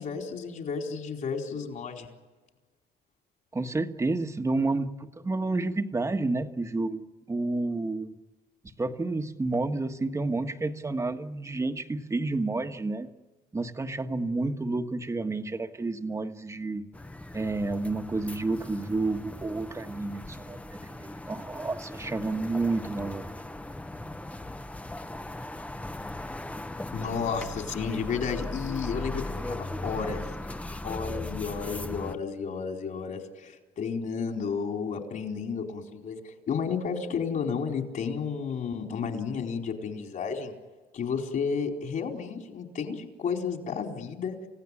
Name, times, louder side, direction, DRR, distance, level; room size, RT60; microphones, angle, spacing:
voice 1, 0.0-2.1 26.9-30.2 30.8-40.5 40.9-44.4, left 6 dB, 50° left, 2 dB, 4.4 m, -32 dB
voice 2, 3.5-8.1 8.8-13.1 13.5-16.9 17.3-23.3, right 3 dB, 15° right, 7 dB, 1.5 m, -30 dB
sound 1, 16.9-32.2, left 1 dB, 10° left, 0.9 m, -38 dB
28.5 x 16.5 x 10.0 m, 1.3 s
cardioid pair, 110°, 17 cm